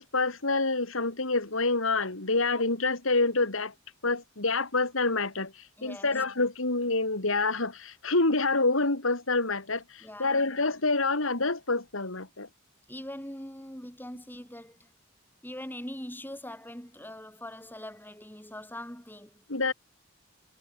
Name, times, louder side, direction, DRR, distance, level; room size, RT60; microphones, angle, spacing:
voice 1, 0.0-3.7 4.0-5.5 5.8-12.5 19.5-19.7, left 3 dB, 70° left, 2.8 m, -27 dB
voice 2, 5.8-6.2 10.0-10.4 12.9-14.9 15.4-19.4, left 1 dB, 10° left, 7.6 m, -42 dB
head